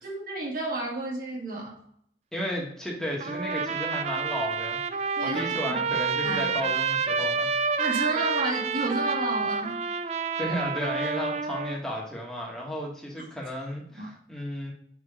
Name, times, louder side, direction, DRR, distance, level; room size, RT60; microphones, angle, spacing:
voice 1, 0.0-1.8 5.2-5.8 6.2-6.5 7.8-9.8 14.0-14.1, right 2 dB, 50° right, -3 dB, 1.8 m, -31 dB
voice 2, 2.3-7.5 10.4-14.7, equal, 5° left, -3 dB, 1.4 m, -33 dB
Trumpet, 3.2-11.8, right 5 dB, 35° right, 0.3 m, -29 dB
5.5 x 4.9 x 3.6 m, 0.67 s
head